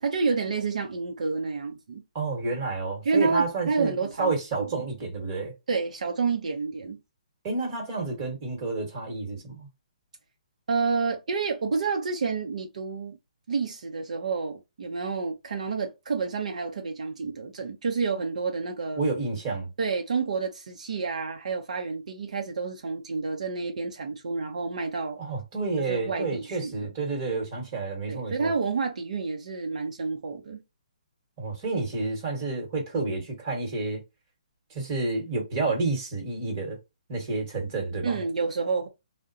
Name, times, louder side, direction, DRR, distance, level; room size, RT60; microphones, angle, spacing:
voice 1, 0.0-2.0 3.0-4.3 5.7-7.0 10.7-13.2 13.5-19.0 19.8-25.2 25.8-26.9 28.1-30.6 38.0-38.9, right 4 dB, 65° right, 0.7 m, -29 dB
voice 2, 2.1-5.5 7.4-9.7 19.0-19.7 25.2-28.5 31.4-34.0 34.7-36.8 37.1-38.2, right 3 dB, 20° right, 1.2 m, -30 dB
3.6 x 2.1 x 2.5 m
hypercardioid pair, 170°, 4 cm